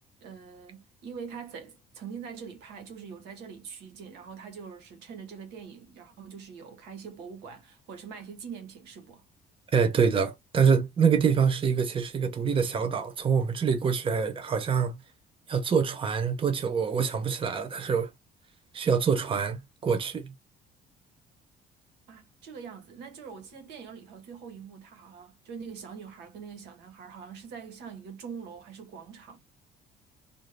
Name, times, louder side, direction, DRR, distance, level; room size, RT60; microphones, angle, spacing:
voice 1, 0.2-9.2 22.1-29.4, right 6 dB, 85° right, 1.4 m, -43 dB
voice 2, 9.7-15.0 15.5-18.1 18.7-20.3, right 6 dB, 30° right, 0.8 m, -25 dB
3.6 x 2.6 x 3.2 m
cardioid pair, 110°, 17 cm